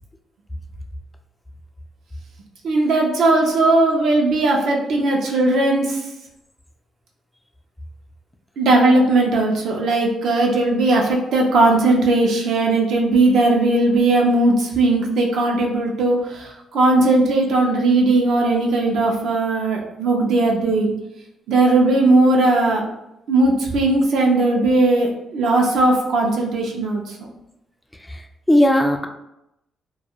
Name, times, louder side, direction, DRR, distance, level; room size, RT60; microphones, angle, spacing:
voice 1, 2.6-6.1 8.6-20.9 21.5-22.9 23.3-27.2, right 2 dB, 75° right, 0 dB, 0.6 m, -18 dB
voice 2, 28.0-29.1, left 1 dB, 10° left, 4 dB, 0.3 m, -18 dB
2.3 x 2.3 x 2.8 m, 0.86 s
cardioid pair, 90°, 0 cm